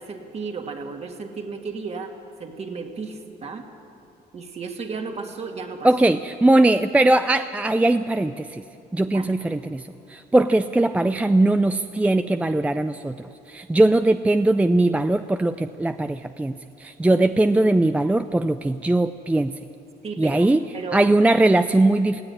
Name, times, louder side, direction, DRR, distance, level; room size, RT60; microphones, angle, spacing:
voice 1, 0.0-3.7 4.3-5.9 9.1-9.4 10.8-10.9 20.0-21.0, right 4 dB, 40° right, 3 dB, 2.3 m, -34 dB
voice 2, 5.8-8.6 8.9-13.2 13.5-19.5 20.2-20.7 20.9-22.2, right 2 dB, 10° right, 10 dB, 0.5 m, -20 dB
18.5 x 16.0 x 9.9 m, 2.6 s
cardioid pair, 110°, 17 cm